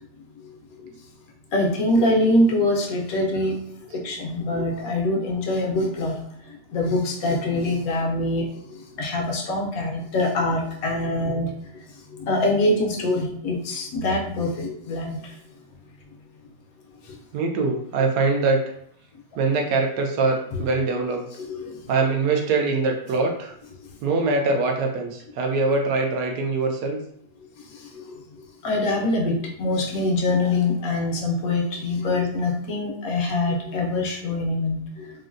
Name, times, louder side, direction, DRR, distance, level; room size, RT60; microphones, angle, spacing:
voice 1, 1.5-3.6 3.9-6.2 6.7-8.5 9.0-11.5 12.2-15.2 21.5-21.8 27.9-28.0 28.6-35.1, left 2 dB, 70° left, 0 dB, 1.1 m, -24 dB
voice 2, 17.3-18.6 19.4-21.3 21.9-23.5 24.0-27.0, right 3 dB, 80° right, 2 dB, 1.2 m, -23 dB
3.7 x 2.1 x 2.5 m, 0.69 s
omnidirectional pair, 1.7 m